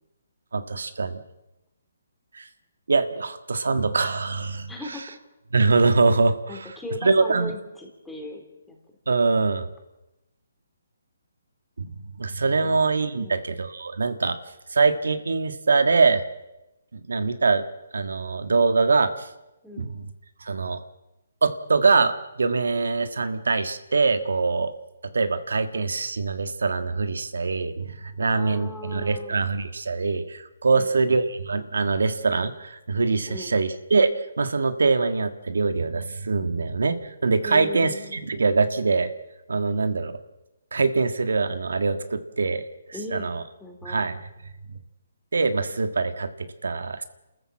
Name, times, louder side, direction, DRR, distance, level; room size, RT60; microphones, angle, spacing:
voice 1, 0.5-1.2 2.3-2.5 2.9-5.2 5.5-7.5 9.1-9.6 11.8-11.9 12.2-14.4 14.7-16.2 16.9-17.6 17.9-19.3 19.8-20.0 20.4-20.8 21.4-24.7 25.1-30.2 30.6-34.1 34.4-39.1 39.5-40.2 40.7-42.6 42.9-43.4 43.8-44.3 45.3-47.0, right 4 dB, 85° right, 9 dB, 1.6 m, -23 dB
voice 2, 4.7-5.2 6.5-8.8 12.6-12.7 13.2-13.4 19.6-19.9 28.2-29.5 30.7-31.2 33.3-33.5 37.4-38.3 42.9-43.3 43.6-44.0, left 2 dB, 5° left, 1 dB, 3.5 m, -38 dB
28.5 x 14.0 x 7.6 m, 0.97 s
hypercardioid pair, 160°, 0 cm